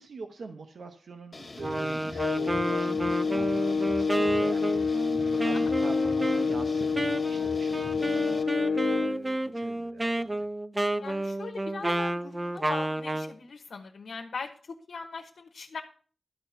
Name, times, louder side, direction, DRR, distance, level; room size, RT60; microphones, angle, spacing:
voice 1, 0.0-10.5, right 4 dB, 80° right, 5 dB, 1.0 m, -44 dB
sound 1, 1.3-8.4, left 2 dB, 30° left, 1.3 m, -43 dB
Wind instrument woodwind instrument, 1.6-13.3, right 1 dB, 15° right, 0.5 m, -31 dB
sound 2, 2.1-9.2, left 5 dB, 65° left, 0.5 m, -28 dB
voice 2, 11.0-15.8, left 4 dB, 85° left, 3 dB, 1.2 m, -40 dB
12.5 x 4.2 x 7.9 m, 0.42 s
wide cardioid pair, 140°, 0 cm